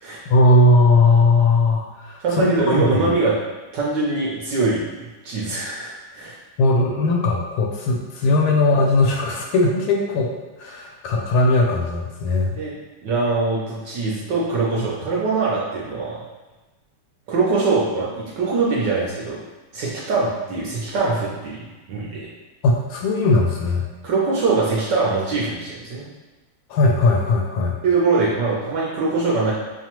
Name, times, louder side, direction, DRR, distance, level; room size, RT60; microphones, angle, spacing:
voice 1, 0.3-3.1 6.6-10.3 10.6-12.6 14.8-14.9 22.6-23.8 26.7-27.8, left 2 dB, 75° left, 0 dB, 1.3 m, -18 dB
voice 2, 2.2-3.4 3.7-4.9 5.2-6.4 12.6-12.7 13.0-16.2 17.3-19.4 19.7-21.6 21.9-22.3 24.0-26.1 27.8-29.5, right 3 dB, 70° right, -5 dB, 1.1 m, -22 dB
5.6 x 2.2 x 2.9 m, 1.2 s
omnidirectional pair, 2.4 m